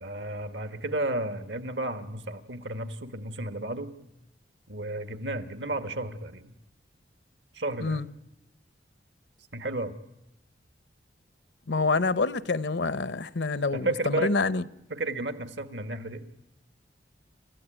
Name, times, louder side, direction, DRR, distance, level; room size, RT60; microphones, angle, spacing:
voice 1, 0.0-4.0 4.7-6.5 7.5-8.0 9.5-9.9 13.7-14.3 14.9-16.3, right 2 dB, 75° right, 1.7 m, -32 dB
voice 2, 11.7-14.6, left 3 dB, 70° left, 0.8 m, -27 dB
28.5 x 14.0 x 9.2 m
head